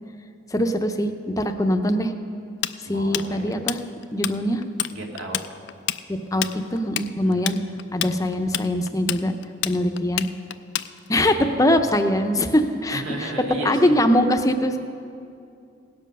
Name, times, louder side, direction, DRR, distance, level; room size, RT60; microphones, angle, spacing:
voice 1, 0.5-2.1 2.9-3.8 4.1-4.6 6.3-6.4 6.7-7.6 7.9-9.3 9.6-10.3 11.1-13.3 13.6-14.8, left 1 dB, 15° left, 6 dB, 0.6 m, -22 dB
Tools, 2.6-4.3 4.6-4.9 5.2-11.2, left 12 dB, 60° left, 0.4 m, -28 dB
voice 2, 2.9-3.6 4.9-5.4 7.2-7.7 11.5-11.7 12.9-14.0, right 1 dB, 80° right, 0 dB, 2.0 m, -34 dB
18.5 x 7.7 x 5.4 m, 2.5 s
head